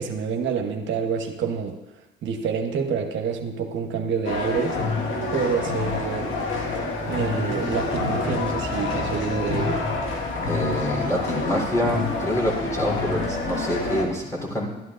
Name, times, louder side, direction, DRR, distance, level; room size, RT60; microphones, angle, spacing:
voice 1, 0.0-1.7 2.2-4.8 5.3-6.3 7.1-9.8, right 6 dB, 75° right, 3 dB, 1.0 m, -27 dB
sound 1, 4.2-14.1, left 3 dB, 75° left, 1.6 m, -27 dB
voice 2, 10.5-14.7, left 1 dB, 15° left, -3 dB, 3.6 m, -26 dB
12.5 x 12.0 x 2.5 m, 1.0 s
cardioid pair, 90°, 20 cm